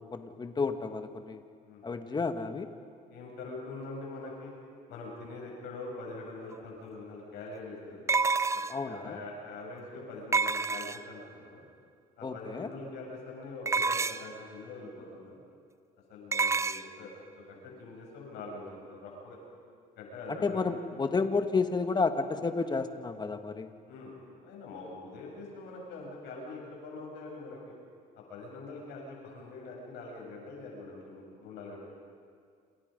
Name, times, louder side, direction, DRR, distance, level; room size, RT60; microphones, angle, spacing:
voice 1, 0.0-1.4 1.8-2.7 8.7-9.2 12.2-12.7 20.3-23.7, left 4 dB, 25° left, 8 dB, 1.7 m, -31 dB
voice 2, 3.1-4.5 4.9-8.1 8.5-11.6 12.2-15.4 16.1-19.4 20.0-20.6 23.9-24.2 24.4-27.6 28.1-31.8, left 3 dB, 85° left, -1 dB, 7.9 m, -44 dB
sound 1, 6.5-6.6 8.1-8.9 10.3-11.2 13.7-14.4 16.3-16.8, right 4 dB, 15° right, 0.5 m, -28 dB
28.0 x 27.5 x 5.3 m, 2.2 s
cardioid pair, 110°, 17 cm